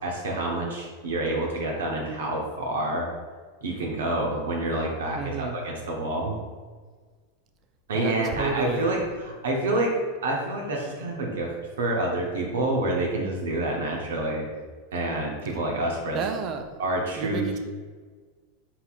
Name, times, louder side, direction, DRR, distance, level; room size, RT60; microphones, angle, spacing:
voice 1, 0.0-3.1 3.6-6.4 7.9-9.9 10.2-11.5 11.8-14.5 14.9-16.2 16.8-17.6, right 1 dB, 70° right, -1 dB, 0.8 m, -28 dB
voice 2, 5.1-5.6 7.9-8.9 16.1-16.6 17.2-17.6, right 6 dB, 40° right, 6 dB, 0.5 m, -30 dB
4.1 x 3.9 x 2.4 m, 1.5 s
figure-of-eight pair, 90°, 0 cm